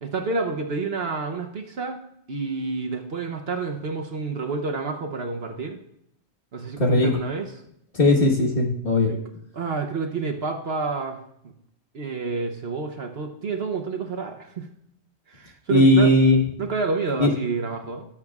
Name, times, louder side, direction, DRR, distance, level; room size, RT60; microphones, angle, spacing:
voice 1, 0.0-2.0 2.3-5.8 6.5-7.5 9.0-9.2 9.5-11.2 11.9-14.7 15.3-16.1 16.6-18.1, right 4 dB, 55° right, 4 dB, 1.0 m, -29 dB
voice 2, 6.8-7.1 7.9-9.1 15.7-16.4 17.2-17.3, left 1 dB, 45° left, 1 dB, 1.6 m, -18 dB
18.5 x 7.3 x 2.4 m, 0.73 s
omnidirectional pair, 1.4 m